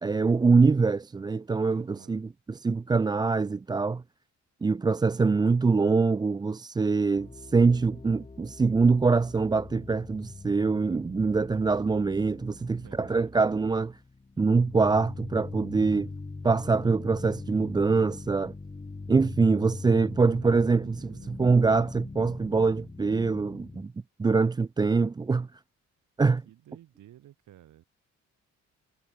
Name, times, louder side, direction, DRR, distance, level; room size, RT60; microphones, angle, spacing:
voice 1, 0.0-4.0 4.6-14.0 14.4-16.1 16.4-18.5 19.1-23.9 24.2-25.5 26.2-26.4, right 4 dB, 15° right, 0.4 m, -24 dB
voice 2, 1.7-2.3 12.6-13.4 20.2-21.4 26.4-27.8, right 13 dB, 80° right, 7.3 m, -53 dB
sound 1, 7.1-23.8, left 3 dB, 20° left, 2.4 m, -42 dB
cardioid pair, 90°, 30 cm